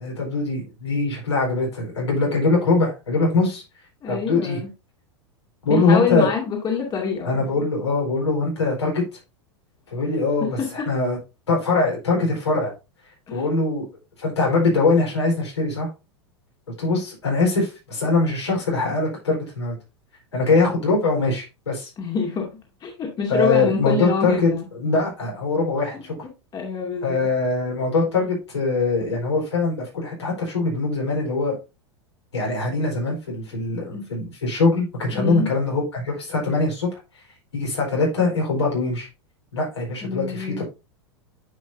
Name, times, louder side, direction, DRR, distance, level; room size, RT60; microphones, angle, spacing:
voice 1, 0.0-3.6 4.1-4.6 5.6-6.3 7.2-9.0 9.9-11.2 11.5-12.7 13.3-13.8 14.2-15.9 16.8-19.7 20.3-21.9 23.3-26.1 27.0-31.6 32.3-36.9 37.5-39.1 39.5-40.6, left 3 dB, 80° left, 4.6 m, -22 dB
voice 2, 4.0-4.7 5.7-7.4 13.3-13.4 22.0-22.5 22.8-22.9 23.2-24.6 26.5-27.3 33.9-34.0 35.1-35.5 40.0-40.6, left 5 dB, 30° left, 2.2 m, -25 dB
9.6 x 5.5 x 2.7 m
figure-of-eight pair, 95°, 14 cm